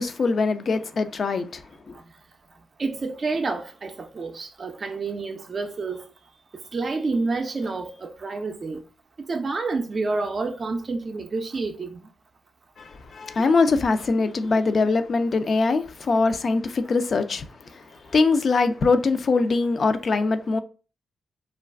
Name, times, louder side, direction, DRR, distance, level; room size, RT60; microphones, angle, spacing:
voice 1, 0.0-2.0 12.8-20.6, left 3 dB, 55° left, 0.4 m, -23 dB
voice 2, 2.8-6.0 6.7-8.8 9.3-12.0, right 3 dB, 50° right, 0.4 m, -29 dB
2.3 x 2.3 x 3.3 m
supercardioid pair, 50°, 0 cm